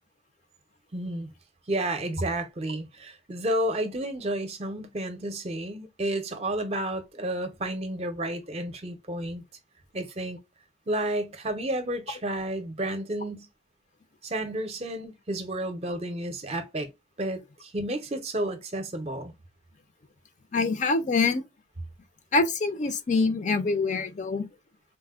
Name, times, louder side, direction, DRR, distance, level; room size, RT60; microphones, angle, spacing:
voice 1, 0.9-1.3 1.7-9.4 9.9-10.4 10.9-13.5 14.2-16.9 17.2-19.3, right 1 dB, 35° right, 0.6 m, -31 dB
voice 2, 20.5-21.4 22.3-24.5, left 3 dB, 40° left, 0.5 m, -25 dB
4.1 x 2.1 x 2.3 m
head